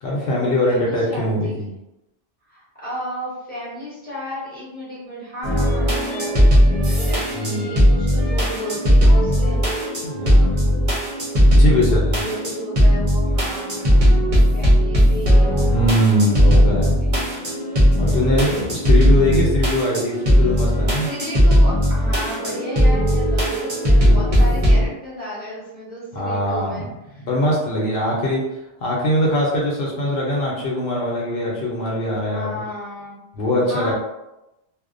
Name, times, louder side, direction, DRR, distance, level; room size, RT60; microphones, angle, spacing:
voice 1, 0.0-1.7 7.4-8.0 10.0-10.7 11.4-12.2 15.7-16.9 18.0-21.1 24.0-24.6 26.1-26.9 27.2-28.4 28.8-32.5 33.3-33.9, left 1 dB, 85° left, -4 dB, 0.9 m, -22 dB
voice 2, 0.7-1.5 2.5-9.9 11.5-17.1 17.8-18.7 21.1-27.3 32.3-33.2 33.6-33.9, equal, 10° left, -9 dB, 0.9 m, -34 dB
sound 1, 5.4-24.9, equal, 40° right, 0.7 m, -17 dB
2.5 x 2.0 x 2.4 m, 0.93 s
omnidirectional pair, 1.0 m